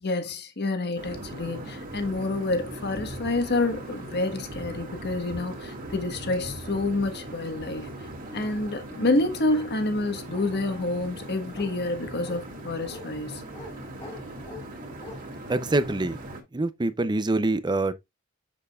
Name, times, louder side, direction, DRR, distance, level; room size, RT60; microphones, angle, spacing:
voice 1, 0.0-7.9 8.3-13.4, left 2 dB, 50° left, 1.4 m, -28 dB
sound 1, 1.0-16.4, right 1 dB, 40° right, 2.1 m, -39 dB
Bark, 9.5-9.7 10.3-10.9 11.5-11.7 12.2-12.4 12.9-13.1 13.5-13.7 14.0-14.7 15.0-15.2, left 2 dB, 30° left, 2.4 m, -43 dB
voice 2, 15.5-16.2 16.5-17.9, right 2 dB, 20° right, 0.6 m, -25 dB
7.4 x 6.7 x 2.4 m
head